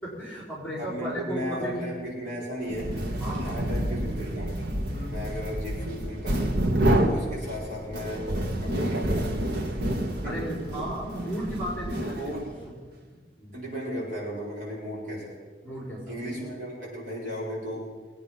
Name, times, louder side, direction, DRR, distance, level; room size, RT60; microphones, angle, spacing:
voice 1, 0.0-1.9 3.2-3.6 4.9-5.3 10.2-12.3 13.0-13.5 15.6-16.5, right 1 dB, 10° left, -4 dB, 4.5 m, -35 dB
voice 2, 0.8-2.9 3.4-6.5 7.0-9.9 10.2-10.4 10.7-10.9 12.0-12.5 13.5-15.4 16.1-17.9, equal, 45° right, -6 dB, 5.2 m, -35 dB
sound 1, 2.7-12.6, right 1 dB, 65° right, 1.5 m, -29 dB
22.0 x 9.4 x 5.6 m, 1.5 s
head